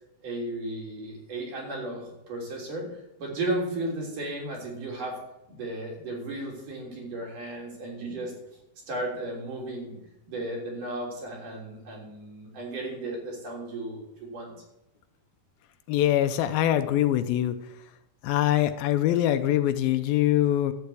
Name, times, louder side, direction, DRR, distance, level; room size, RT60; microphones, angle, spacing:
voice 1, 0.2-2.9 3.2-5.2 5.5-8.3 8.9-10.0 10.3-14.5, right 1 dB, 55° right, -1 dB, 4.8 m, -34 dB
voice 2, 15.9-17.6 18.2-20.7, left 12 dB, 80° left, 9 dB, 2.4 m, -23 dB
12.0 x 8.1 x 8.3 m, 0.86 s
omnidirectional pair, 4.4 m